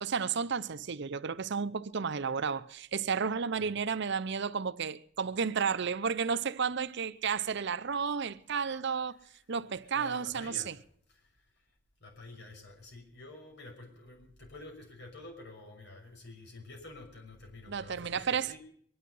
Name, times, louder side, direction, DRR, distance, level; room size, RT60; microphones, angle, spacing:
voice 1, 0.0-9.2 9.5-10.7 17.7-18.5, right 6 dB, 60° right, 0.7 m, -32 dB
voice 2, 9.9-10.7 11.1-11.4 12.0-18.6, left 2 dB, 60° left, 6.1 m, -49 dB
22.5 x 11.0 x 5.5 m
head